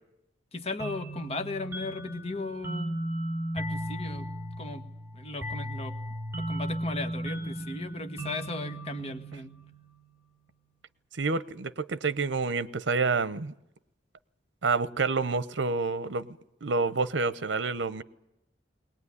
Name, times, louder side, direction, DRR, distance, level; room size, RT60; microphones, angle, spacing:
voice 1, 0.5-3.0 3.5-4.3 4.6-4.8 5.1-5.9 6.4-9.5, left 2 dB, 35° left, 1.8 m, -36 dB
sound 1, 0.8-10.2, right 1 dB, 15° right, 5.2 m, -36 dB
voice 2, 11.2-13.5 14.6-16.3 16.6-18.0, right 4 dB, 75° right, 0.8 m, -28 dB
21.0 x 19.5 x 9.8 m
head